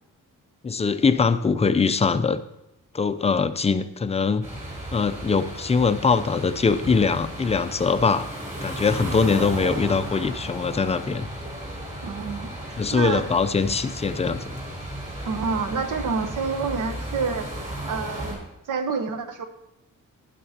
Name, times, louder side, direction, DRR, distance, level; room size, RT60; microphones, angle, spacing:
voice 1, 0.6-2.4 2.9-4.4 4.9-8.3 8.6-11.3 12.8-14.4, left 5 dB, 20° left, 11 dB, 0.4 m, -22 dB
sound 1, 4.4-18.4, right 1 dB, 20° right, 4.3 m, -34 dB
voice 2, 12.0-13.2 15.2-17.5 17.9-18.4 18.7-19.5, right 5 dB, 65° right, 8 dB, 1.0 m, -28 dB
12.0 x 10.0 x 2.8 m, 0.88 s
wide cardioid pair, 155°, 33 cm